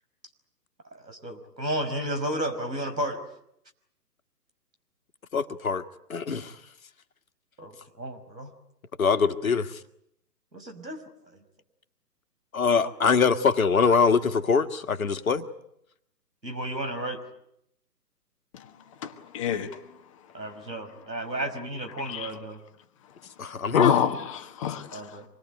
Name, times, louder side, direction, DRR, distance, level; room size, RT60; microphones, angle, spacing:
voice 1, 0.9-3.2 7.6-8.5 10.5-11.0 16.4-17.2 20.3-22.6 24.9-25.3, right 1 dB, 90° right, 5.3 m, -33 dB
voice 2, 5.3-5.8 6.1-6.5 9.0-9.8 12.5-15.5 23.4-23.9, left 5 dB, 55° left, 1.7 m, -23 dB
voice 3, 19.0-19.9 21.9-22.3 23.5-25.2, left 9 dB, 20° left, 1.2 m, -28 dB
26.0 x 21.0 x 9.3 m
figure-of-eight pair, 140°, 50 cm